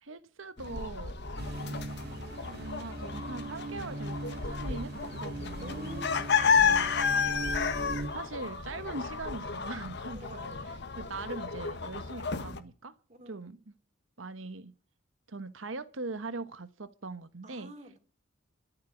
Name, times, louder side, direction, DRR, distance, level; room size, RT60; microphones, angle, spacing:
voice 1, 0.0-1.2 2.0-2.1 2.5-6.0 6.6-6.9 8.1-12.9 13.3-13.7 14.2-14.7 15.3-17.7, right 3 dB, 75° right, 1.2 m, -41 dB
sound 1, 0.6-12.6, left 5 dB, 60° left, 1.4 m, -32 dB
sound 2, 1.4-8.1, right 1 dB, 55° right, 2.5 m, -40 dB
voice 2, 5.6-6.8 10.1-10.7 13.1-13.5 17.4-18.0, right 1 dB, 35° right, 3.2 m, -47 dB
13.5 x 8.1 x 8.3 m
head